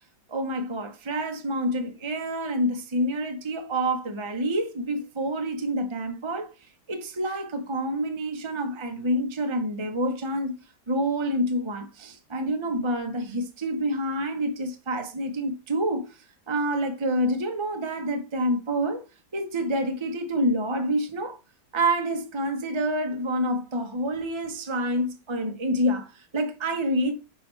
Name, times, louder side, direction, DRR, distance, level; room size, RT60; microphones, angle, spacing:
voice 1, 0.3-6.5 6.9-10.5 10.9-16.2 16.5-19.0 19.3-21.4 21.7-27.1, right 1 dB, 25° right, 0.7 m, -27 dB
8.5 x 4.8 x 3.2 m
omnidirectional pair, 1.9 m